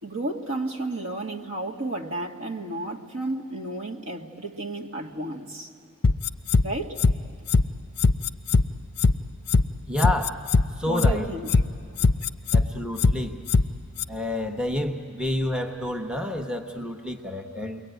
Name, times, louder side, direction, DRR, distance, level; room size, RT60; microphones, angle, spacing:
voice 1, 0.0-5.7 6.6-7.0 10.9-11.6, right 2 dB, 65° right, 1 dB, 1.8 m, -32 dB
sound 1, 6.0-6.6 7.0-7.1 7.5-7.6 8.0-8.6 9.0-9.1 9.5-9.6 10.0-10.6 11.0-11.1 11.5-11.6 12.0-12.6 13.0-13.1 13.5-13.6 14.0-14.1, left 3 dB, 50° left, 0.6 m, -19 dB
voice 2, 9.9-10.4 10.8-11.3 12.5-13.4 14.1-17.8, left 1 dB, 5° right, 3 dB, 1.0 m, -29 dB
29.5 x 22.0 x 9.3 m, 2.3 s
head